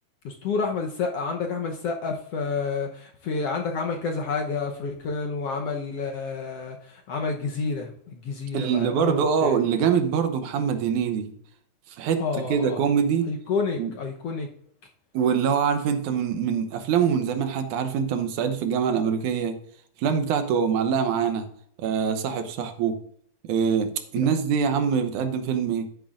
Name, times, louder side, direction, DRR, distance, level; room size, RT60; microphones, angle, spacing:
voice 1, 0.2-9.6 12.2-12.8 13.3-14.5 24.2-24.3, left 4 dB, 65° left, 2 dB, 1.7 m, -29 dB
voice 2, 8.5-11.3 12.0-12.2 12.5-13.3 13.8-13.9 15.1-19.6 20.0-21.5 21.8-23.0 23.4-25.9, right 7 dB, 80° right, 8 dB, 2.2 m, -24 dB
11.5 x 10.5 x 2.5 m, 0.66 s
omnidirectional pair, 3.6 m